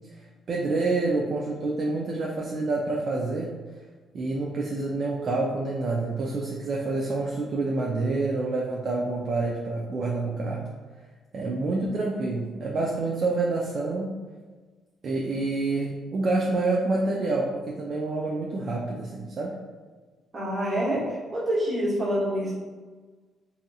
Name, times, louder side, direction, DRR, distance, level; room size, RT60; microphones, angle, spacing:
voice 1, 0.5-3.5 4.1-10.7 11.3-14.2 15.0-19.6, right 3 dB, 55° right, -2 dB, 0.3 m, -27 dB
voice 2, 20.3-21.0 21.3-22.5, equal, 35° right, -6 dB, 1.0 m, -26 dB
2.7 x 2.6 x 2.3 m, 1.4 s
cardioid pair, 90°, 0 cm